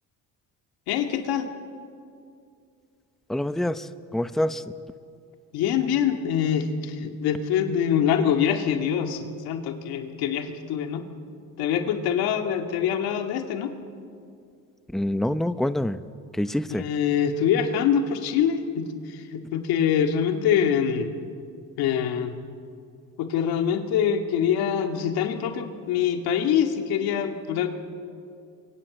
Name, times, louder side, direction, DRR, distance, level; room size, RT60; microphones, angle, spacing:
voice 1, 0.9-1.5 5.5-11.0 11.6-13.7 16.7-21.1 21.8-22.3 23.2-27.7, left 8 dB, 85° left, 5 dB, 2.2 m, -24 dB
voice 2, 3.3-3.8 4.1-4.6 14.9-16.0 16.4-16.8, left 1 dB, ahead, 11 dB, 0.8 m, -25 dB
28.5 x 23.0 x 7.9 m, 2.4 s
cardioid pair, 85°, 36 cm